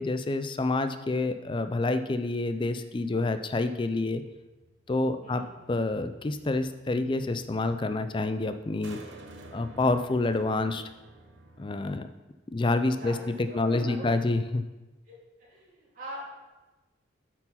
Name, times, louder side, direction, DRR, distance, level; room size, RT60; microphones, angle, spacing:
voice 1, 0.0-4.2 4.9-5.4 5.7-9.0 9.5-10.8 11.6-12.1 12.5-14.6, left 2 dB, 25° left, 9 dB, 0.4 m, -28 dB
sound 1, 4.3-11.9, right 2 dB, 65° right, 0.8 m, -52 dB
voice 2, 12.9-14.1 15.1-16.3, equal, 45° right, -7 dB, 2.7 m, -42 dB
8.1 x 4.5 x 5.7 m, 1.1 s
head